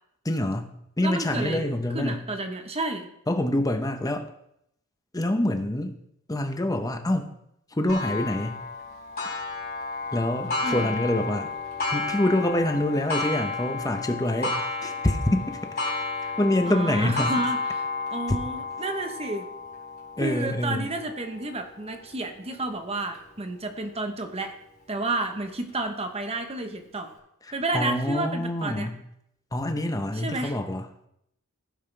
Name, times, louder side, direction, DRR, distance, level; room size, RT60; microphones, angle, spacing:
voice 1, 0.2-2.3 3.3-4.3 5.1-5.9 6.3-7.3 7.7-8.6 10.1-11.5 11.9-14.6 14.8-15.9 16.4-17.3 20.2-20.9 27.7-29.0 29.5-30.8, left 1 dB, 15° left, 6 dB, 0.8 m, -26 dB
voice 2, 1.0-1.7 1.9-3.1 10.6-10.9 16.6-17.8 18.1-19.5 20.2-24.5 24.9-27.1 27.5-28.9 30.1-30.6, right 2 dB, 25° right, 6 dB, 1.0 m, -31 dB
Clock, 7.9-23.2 23.8-23.9 24.4-24.5 25.5-25.6, left 3 dB, 45° left, 3.7 m, -32 dB
16.0 x 5.6 x 3.4 m, 0.78 s
head